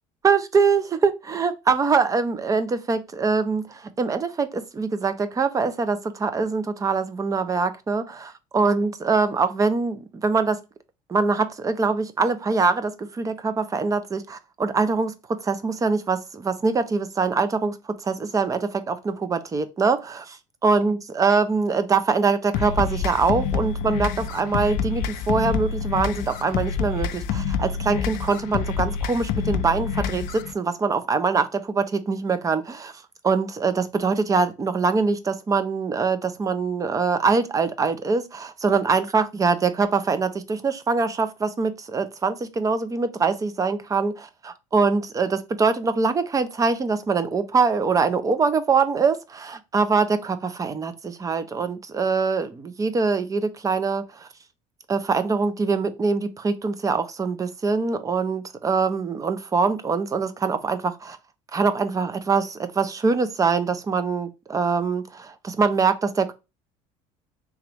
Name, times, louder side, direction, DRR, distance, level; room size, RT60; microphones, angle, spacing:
voice 1, 0.2-10.6 11.1-32.9 33.2-54.3 54.9-61.2 61.5-66.3, right 4 dB, 20° right, 0.5 m, -23 dB
sound 1, 22.5-30.5, left 7 dB, 70° left, 0.4 m, -27 dB
3.5 x 2.9 x 3.3 m
supercardioid pair, 110°, 15 cm